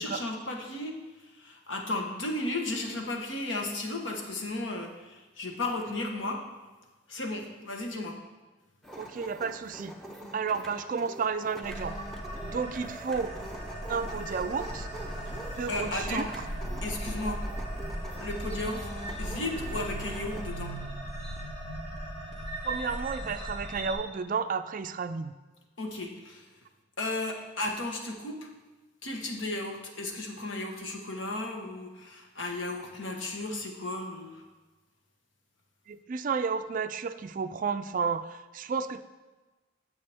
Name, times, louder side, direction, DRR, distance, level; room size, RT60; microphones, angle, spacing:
voice 1, 0.0-6.4 7.1-8.2 15.2-15.3 15.7-16.3 16.8-17.4 18.2-18.9 19.2-20.7 25.8-26.5 27.0-28.5 29.0-34.4, left 2 dB, 70° left, 2 dB, 1.2 m, -34 dB
sound 1, 8.8-20.4, right 1 dB, ahead, 0.6 m, -44 dB
voice 2, 9.0-10.0 10.3-12.0 12.4-13.3 13.9-14.9 15.4-16.3 22.6-25.3 35.9-39.0, right 5 dB, 40° right, 11 dB, 0.3 m, -32 dB
sound 2, 11.6-23.9, right 1 dB, 35° left, 1.5 m, -37 dB
9.7 x 7.5 x 3.5 m, 1.2 s
head